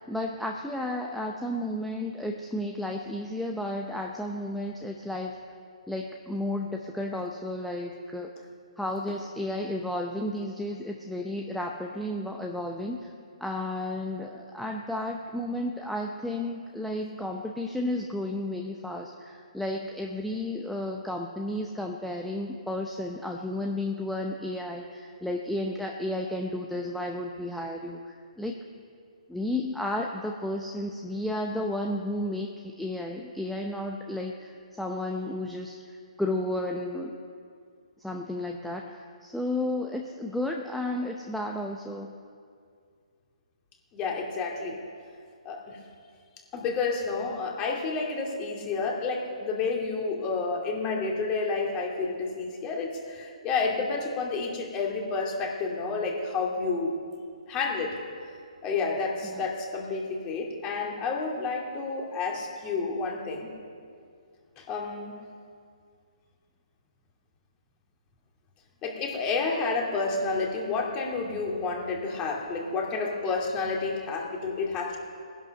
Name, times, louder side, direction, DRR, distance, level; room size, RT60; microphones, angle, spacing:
voice 1, 0.1-5.4 5.9-8.3 8.8-13.1 13.4-28.5 29.3-37.2 38.0-42.1 59.2-59.3, left 1 dB, ahead, 1 dB, 0.7 m, -32 dB
voice 2, 43.9-44.8 45.4-45.8 46.5-57.0 57.5-58.0 58.6-63.5 64.6-65.2 68.8-75.0, left 4 dB, 20° left, 0 dB, 2.4 m, -30 dB
19.0 x 11.0 x 6.5 m, 2.3 s
hypercardioid pair, 150°, 4 cm